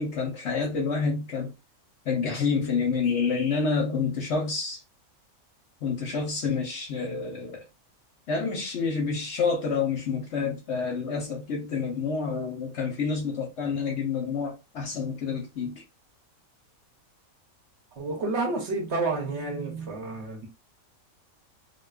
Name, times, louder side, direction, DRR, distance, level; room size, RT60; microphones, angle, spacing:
voice 1, 0.0-1.5 2.1-4.8 5.8-7.6 8.3-15.8, left 5 dB, 65° left, 0.8 m, -28 dB
voice 2, 18.0-20.5, right 3 dB, 60° right, 0.9 m, -30 dB
2.6 x 2.2 x 2.2 m
omnidirectional pair, 1.5 m